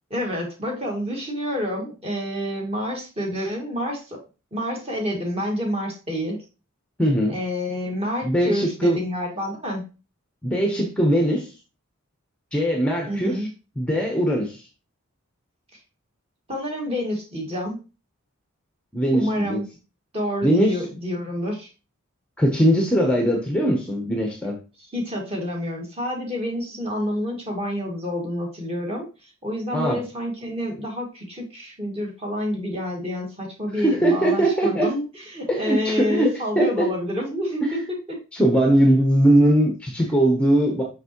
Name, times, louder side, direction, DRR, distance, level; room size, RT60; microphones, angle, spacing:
voice 1, 0.1-4.2 4.5-6.4 7.3-9.8 13.1-13.5 16.5-17.8 19.1-19.6 20.1-21.7 24.9-38.2, equal, 25° right, 0 dB, 1.9 m, -28 dB
voice 2, 7.0-7.4 8.2-9.0 10.4-11.5 12.5-13.5 13.8-14.7 18.9-19.6 20.4-20.8 22.4-24.6 29.7-30.0 33.7-34.9 35.5-36.9 37.6-37.8 38.3-40.8, right 1 dB, 5° left, 1 dB, 0.8 m, -20 dB
6.1 x 5.9 x 3.0 m, 0.31 s
head